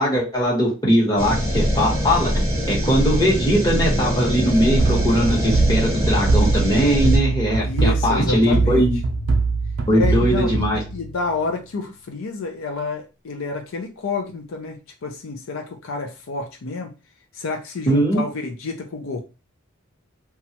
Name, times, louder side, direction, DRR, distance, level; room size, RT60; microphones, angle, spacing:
voice 1, 0.0-2.4 2.7-9.0 9.9-10.8 17.9-18.2, equal, 20° left, -4 dB, 1.0 m, -20 dB
sound 1, 1.2-7.2, equal, 15° right, 0.8 m, -22 dB
sound 2, 4.8-11.4, right 3 dB, 65° right, 0.5 m, -22 dB
voice 2, 7.6-8.9 9.9-16.9 17.3-19.2, left 4 dB, 75° left, 4 dB, 0.5 m, -29 dB
3.0 x 2.3 x 2.8 m, 0.30 s
head